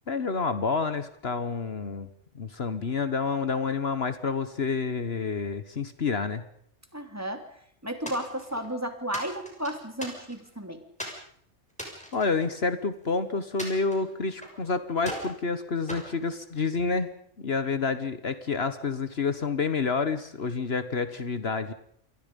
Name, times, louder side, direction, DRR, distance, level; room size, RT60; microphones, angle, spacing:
voice 1, 0.1-2.1 2.3-6.4 12.1-17.1 17.4-21.7, left 4 dB, 55° left, 11 dB, 1.5 m, -29 dB
voice 2, 6.9-7.5 7.8-10.8, right 1 dB, 10° right, 6 dB, 2.9 m, -33 dB
sound 1, 8.1-8.7 9.1-10.5 11.0-11.2 11.7-13.1 13.6-14.6 15.0-15.4 15.9-16.9, equal, 5° left, 6.1 m, -40 dB
28.0 x 23.0 x 5.3 m, 0.64 s
omnidirectional pair, 1.3 m